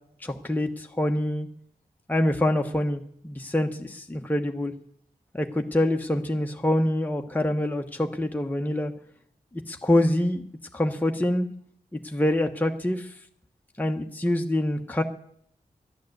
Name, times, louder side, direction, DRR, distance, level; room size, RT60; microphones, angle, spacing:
voice 1, 0.2-1.5 2.1-4.7 5.3-8.9 9.7-10.4 10.7-11.5 12.0-13.1 13.8-15.0, left 1 dB, 10° left, 3 dB, 1.0 m, -25 dB
11.5 x 10.5 x 7.8 m, 0.66 s
wide cardioid pair, 105°, 16 cm